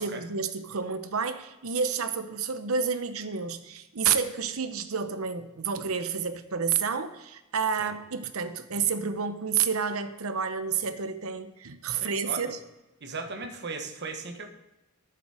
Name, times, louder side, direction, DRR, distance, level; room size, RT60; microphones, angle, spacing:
voice 1, 0.0-12.6, right 6 dB, 85° right, 10 dB, 0.8 m, -30 dB
voice 2, 11.9-12.5 13.0-14.5, right 3 dB, 55° right, 4 dB, 1.2 m, -37 dB
11.5 x 7.1 x 4.9 m, 1.0 s
head